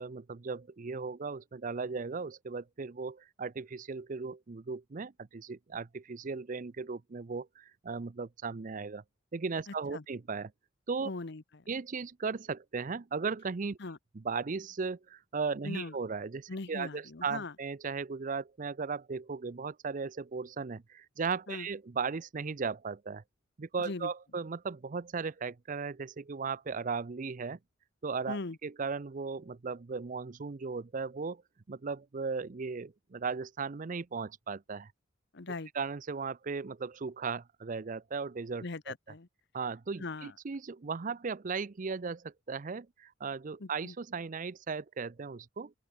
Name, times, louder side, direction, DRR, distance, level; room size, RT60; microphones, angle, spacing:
voice 1, 0.0-9.0 9.3-10.5 10.9-11.1 11.7-13.8 14.1-23.2 23.6-27.6 28.0-31.4 31.7-34.9 35.7-38.9 39.5-45.7, right 5 dB, 40° right, 0.5 m, -37 dB
voice 2, 9.7-10.0 11.0-11.6 13.8-14.0 15.6-15.9 16.5-17.5 21.5-21.7 23.8-24.1 28.3-28.6 35.3-35.7 38.6-39.3 40.0-40.3 43.6-43.9, left 3 dB, 60° left, 1.0 m, -40 dB
open air
head